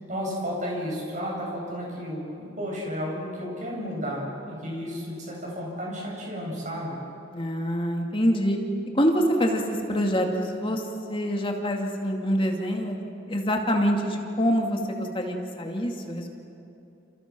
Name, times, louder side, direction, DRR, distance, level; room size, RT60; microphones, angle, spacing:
voice 1, 0.1-7.0, equal, 40° right, -2 dB, 8.0 m, -32 dB
voice 2, 7.3-8.6 8.9-16.3, equal, 25° left, 2 dB, 2.4 m, -26 dB
29.5 x 29.0 x 6.2 m, 2.8 s
head